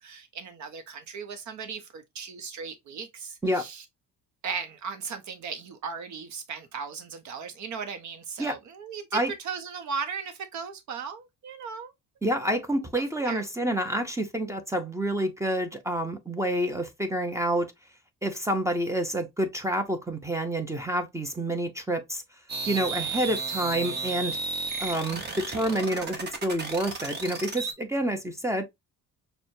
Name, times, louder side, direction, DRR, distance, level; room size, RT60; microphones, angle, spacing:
voice 1, 0.0-3.8 4.4-9.2 9.4-11.9 12.4-12.5 13.2-13.4 25.1-25.4, right 6 dB, 60° right, 0.7 m, -37 dB
voice 2, 12.2-17.7 18.2-22.2 22.7-24.4 24.8-28.6, right 1 dB, 10° right, 0.6 m, -28 dB
sound 1, 22.5-27.7, right 4 dB, 30° right, 0.9 m, -33 dB
6.0 x 2.1 x 2.6 m
cardioid pair, 130°, 33 cm